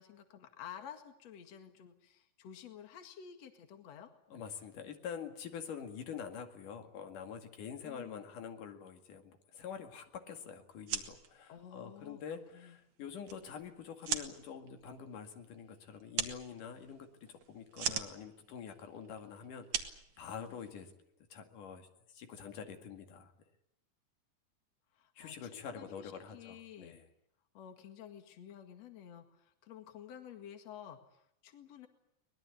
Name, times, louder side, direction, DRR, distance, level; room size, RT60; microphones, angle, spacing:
voice 1, 0.0-4.1 7.8-8.3 11.5-12.2 12.5-12.8 20.4-20.6 24.9-27.0 27.5-31.9, left 9 dB, 55° left, 6 dB, 3.0 m, -51 dB
voice 2, 4.3-20.9 21.3-21.9 22.1-23.3 25.2-27.1, left 7 dB, 85° left, 5 dB, 3.7 m, -46 dB
sound 1, 10.7-20.9, right 7 dB, 65° right, 3.2 m, -42 dB
24.0 x 20.5 x 8.4 m, 0.75 s
omnidirectional pair, 3.6 m